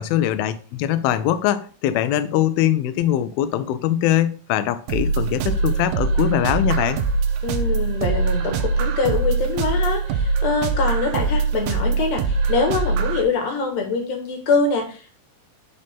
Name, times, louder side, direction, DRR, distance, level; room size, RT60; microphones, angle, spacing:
voice 1, 0.0-7.0, left 11 dB, 80° left, 2.3 m, -22 dB
sound 1, 4.9-13.2, right 4 dB, 85° right, 2.6 m, -22 dB
voice 2, 7.4-15.1, left 4 dB, 55° left, 2.2 m, -24 dB
10.5 x 4.1 x 3.6 m
omnidirectional pair, 4.6 m